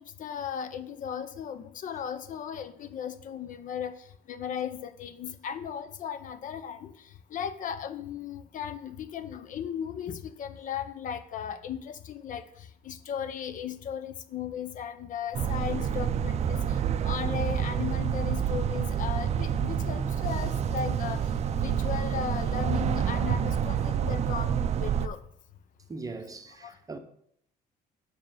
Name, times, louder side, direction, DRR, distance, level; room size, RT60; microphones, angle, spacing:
voice 1, 0.0-25.2 26.6-26.8, left 8 dB, 50° left, 0.6 m, -36 dB
sound 1, 15.3-25.1, right 8 dB, 40° right, 0.4 m, -28 dB
voice 2, 25.9-27.0, right 3 dB, 20° right, 0.8 m, -40 dB
5.6 x 5.0 x 5.6 m
cardioid pair, 110°, 17 cm